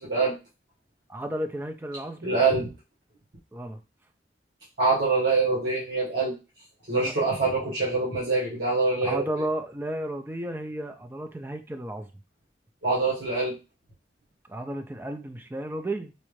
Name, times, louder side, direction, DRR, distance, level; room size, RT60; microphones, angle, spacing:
voice 1, 0.0-0.3 2.2-2.7 4.8-6.4 6.9-9.2 12.8-13.6, right 3 dB, 85° right, -8 dB, 1.4 m, -24 dB
voice 2, 1.1-2.4 3.5-3.8 7.0-7.1 9.0-12.1 14.5-16.1, right 1 dB, 10° right, 6 dB, 0.4 m, -33 dB
4.1 x 2.4 x 3.1 m, 0.30 s
head